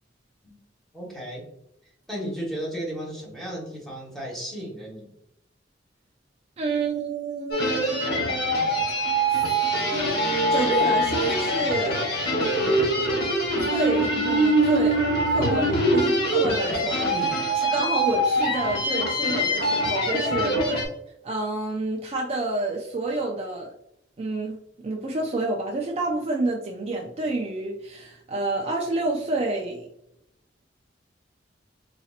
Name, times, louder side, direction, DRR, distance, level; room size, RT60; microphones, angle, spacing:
voice 1, 0.9-1.4 2.1-5.1 17.1-17.4, equal, ahead, -5 dB, 1.3 m, -34 dB
voice 2, 6.6-7.7 9.3-9.6 10.5-12.1 13.6-20.6 21.2-23.7 24.2-24.6 24.8-29.9, right 2 dB, 35° right, 0 dB, 0.4 m, -29 dB
sound 1, 7.5-20.9, right 1 dB, 60° left, 1.2 m, -23 dB
4.0 x 2.8 x 2.4 m, 0.78 s
head